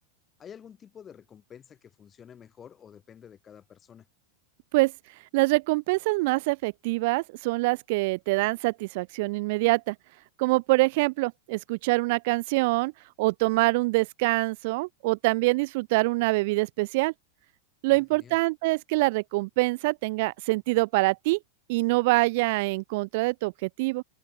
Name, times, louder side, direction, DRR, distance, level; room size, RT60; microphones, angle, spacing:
voice 1, 0.4-4.1 17.9-18.4, left 8 dB, 25° left, 4.5 m, -49 dB
voice 2, 5.3-10.0 10.4-12.9 13.2-17.1 17.8-21.4 21.7-24.0, right 24 dB, 50° right, 0.4 m, -25 dB
figure-of-eight pair, 90°, 0 cm